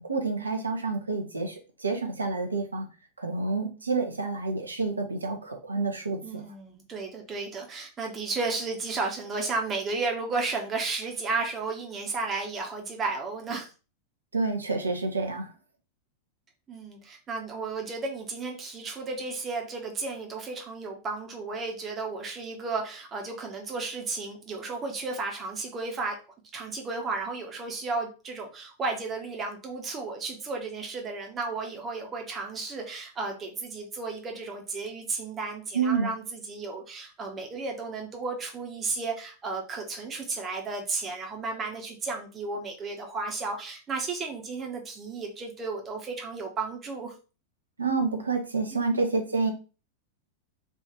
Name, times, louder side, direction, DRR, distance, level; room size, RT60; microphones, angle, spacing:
voice 1, 0.0-2.9 3.2-6.4 14.3-15.5 35.7-36.1 47.8-49.5, right 4 dB, 75° right, 4 dB, 0.8 m, -28 dB
voice 2, 6.2-13.7 16.7-26.2 26.5-47.1 48.7-49.2, right 3 dB, 25° right, 1 dB, 1.1 m, -33 dB
3.5 x 2.7 x 4.2 m, 0.34 s
figure-of-eight pair, 90°, 0 cm